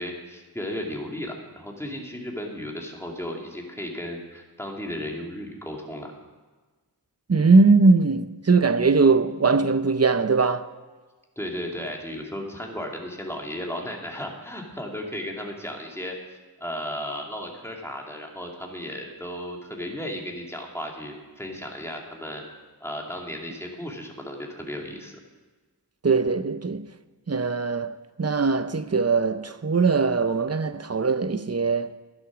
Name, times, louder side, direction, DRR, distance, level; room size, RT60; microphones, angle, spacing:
voice 1, 0.0-6.1 11.4-16.2 16.6-22.4 22.8-25.2, equal, 5° left, 2.5 m, -35 dB
voice 2, 7.3-10.7 26.0-26.8 27.3-31.9, right 4 dB, 40° right, 0.7 m, -21 dB
12.5 x 11.0 x 6.1 m
wide cardioid pair, 40°, 39 cm